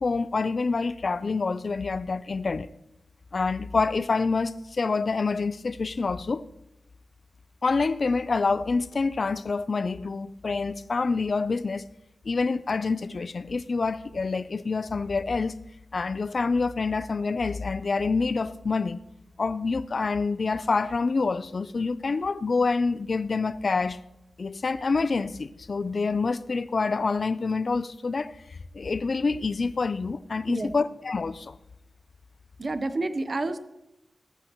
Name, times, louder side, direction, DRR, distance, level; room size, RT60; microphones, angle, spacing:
voice 1, 0.0-2.7 3.3-6.4 7.6-11.9 12.2-15.5 15.9-19.0 19.4-24.0 24.4-31.6, left 4 dB, 40° left, 0.4 m, -27 dB
voice 2, 32.6-33.6, right 2 dB, 35° right, 0.7 m, -29 dB
19.5 x 14.0 x 3.0 m
wide cardioid pair, 170°, 0 cm